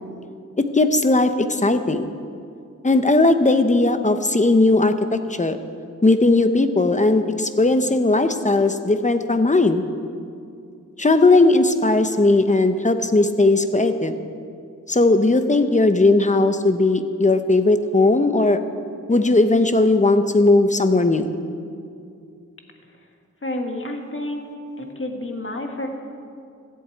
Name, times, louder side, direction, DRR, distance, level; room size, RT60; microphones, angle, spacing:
voice 1, 0.6-2.1 2.8-5.6 6.0-9.8 11.0-14.2 14.9-18.6 19.1-21.4, left 2 dB, 25° left, 9 dB, 0.8 m, -17 dB
voice 2, 23.4-24.4 24.8-25.9, left 1 dB, 45° left, 3 dB, 1.7 m, -29 dB
13.5 x 8.3 x 8.5 m, 2.4 s
wide cardioid pair, 95°, 30 cm